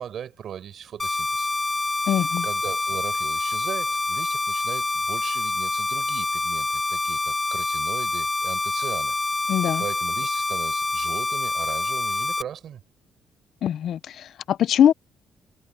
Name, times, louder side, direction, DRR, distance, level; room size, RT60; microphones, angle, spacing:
voice 1, 0.0-1.5 2.4-9.1 9.8-12.8, right 9 dB, 65° right, 5.5 m, -38 dB
sound 1, 1.0-12.4, left 2 dB, 20° left, 0.5 m, -26 dB
voice 2, 2.1-2.4 9.5-9.8 13.6-14.9, left 10 dB, 70° left, 0.4 m, -22 dB
cardioid pair, 90°, 0 cm